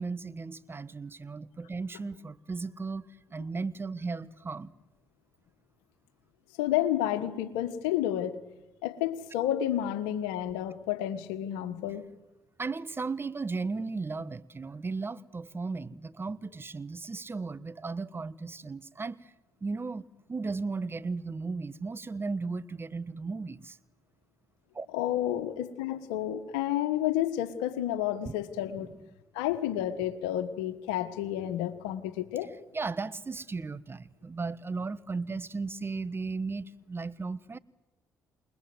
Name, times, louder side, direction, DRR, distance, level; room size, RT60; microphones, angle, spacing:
voice 1, 0.0-4.7 12.6-19.3 19.6-23.8 24.7-24.9 28.2-28.3 28.8-28.9 32.7-37.6, right 4 dB, 30° right, 16 dB, 1.3 m, -36 dB
voice 2, 6.6-8.4 8.8-12.0 24.9-28.9 29.3-32.5, left 12 dB, 90° left, 11 dB, 1.5 m, -30 dB
28.5 x 20.5 x 8.0 m, 1.0 s
hypercardioid pair, 50°, 8 cm